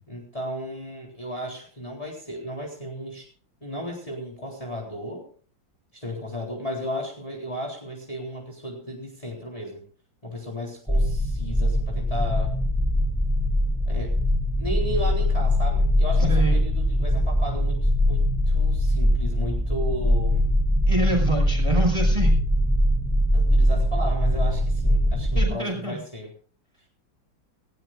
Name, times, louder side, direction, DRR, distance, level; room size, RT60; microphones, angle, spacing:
voice 1, 0.1-3.3 3.6-5.2 5.9-9.8 10.2-12.5 13.9-14.2 14.6-20.5 23.3-26.3, equal, 15° left, -1 dB, 3.9 m, -34 dB
sound 1, 10.9-25.5, equal, ahead, 2.4 m, -22 dB
voice 2, 16.2-16.7 20.9-22.3 25.3-26.0, right 1 dB, 15° right, 2 dB, 5.8 m, -26 dB
19.0 x 19.0 x 2.5 m, 0.43 s
omnidirectional pair, 2.0 m